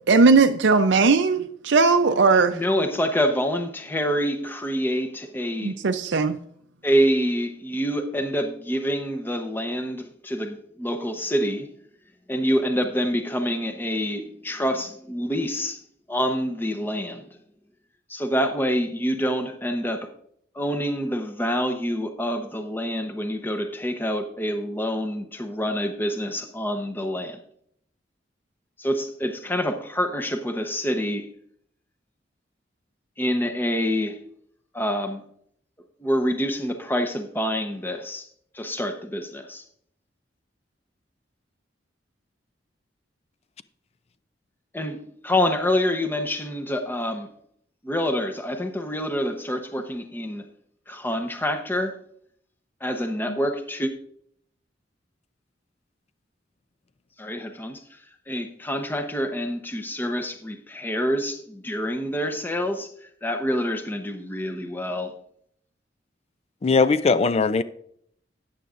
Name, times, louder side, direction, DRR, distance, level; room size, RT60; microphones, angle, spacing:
voice 1, 0.1-2.6 5.6-6.4, right 4 dB, 80° right, 0.5 m, -18 dB
voice 2, 2.5-5.8 6.8-11.7 12.3-15.8 16.1-17.4 18.1-20.1 20.5-27.4 28.8-31.3 33.2-34.2 34.7-35.2 36.0-38.3 38.5-39.6 44.7-47.3 47.8-50.5 50.9-52.0 52.8-53.9 57.2-58.0 58.3-65.1, equal, 10° left, 0.8 m, -26 dB
voice 3, 66.6-67.6, left 4 dB, 35° left, 0.4 m, -20 dB
13.5 x 9.4 x 2.5 m
head